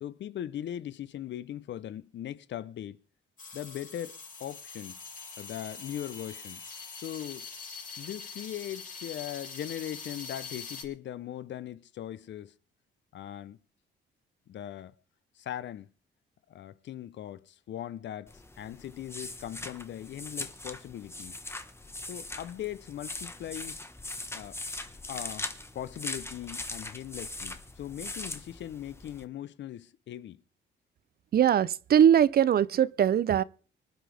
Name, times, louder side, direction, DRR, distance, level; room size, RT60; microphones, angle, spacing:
voice 1, 0.0-3.0 3.5-5.0 5.4-6.6 7.0-7.5 8.0-12.5 13.1-13.6 14.5-14.9 15.4-15.9 16.5-21.4 22.1-23.8 24.3-24.6 25.1-30.4, left 11 dB, 65° left, 0.8 m, -40 dB
sound 1, 3.4-10.8, left 5 dB, 40° left, 4.5 m, -43 dB
sound 2, 18.3-29.2, left 2 dB, 10° left, 1.3 m, -41 dB
voice 2, 31.3-33.4, right 9 dB, 50° right, 0.6 m, -21 dB
25.0 x 10.0 x 3.5 m
cardioid pair, 90°, 20 cm